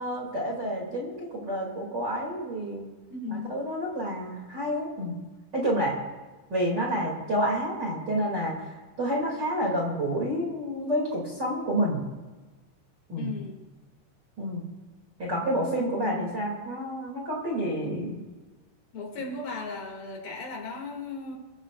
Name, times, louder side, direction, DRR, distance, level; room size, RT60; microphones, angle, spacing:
voice 1, 0.0-2.8 3.3-5.1 5.5-6.0 6.5-8.7 9.0-12.0 13.1-13.3 14.4-14.6 15.2-18.2, equal, 30° right, -2 dB, 2.7 m, -29 dB
voice 2, 3.1-3.5 13.2-13.6 16.0-16.3 18.9-21.4, left 4 dB, 65° left, 0 dB, 4.1 m, -36 dB
25.0 x 15.0 x 2.5 m, 1.2 s
omnidirectional pair, 4.6 m